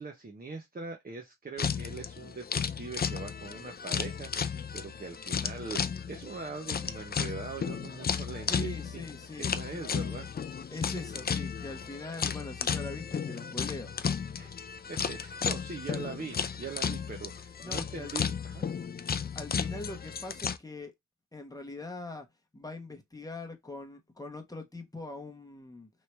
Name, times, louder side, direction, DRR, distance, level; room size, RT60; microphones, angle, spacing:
voice 1, 0.0-9.0 9.4-10.3 14.3-14.5 14.9-18.6, right 4 dB, 30° right, 0.8 m, -42 dB
sound 1, 1.6-20.6, left 7 dB, 30° left, 0.4 m, -34 dB
voice 2, 8.5-9.6 10.7-13.9 17.6-18.3 19.3-20.9 21.3-22.3 22.5-25.9, left 2 dB, 10° left, 1.0 m, -42 dB
3.2 x 2.8 x 3.2 m
cardioid pair, 70°, 31 cm